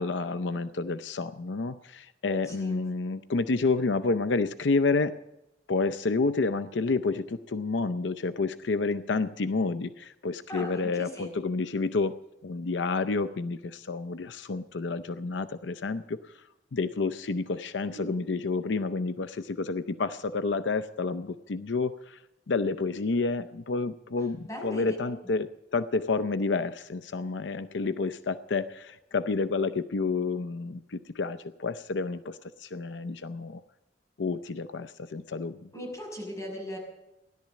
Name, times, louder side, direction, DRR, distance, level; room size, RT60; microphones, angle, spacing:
voice 1, 0.0-5.1 5.7-12.2 12.4-16.4 16.7-22.2 22.5-33.6 34.2-35.7, left 3 dB, 85° left, 12 dB, 0.6 m, -29 dB
voice 2, 2.4-2.8 10.5-11.3 17.9-18.1 24.5-25.0 35.7-36.8, equal, 15° left, -1 dB, 6.0 m, -38 dB
16.5 x 11.5 x 7.5 m, 0.92 s
head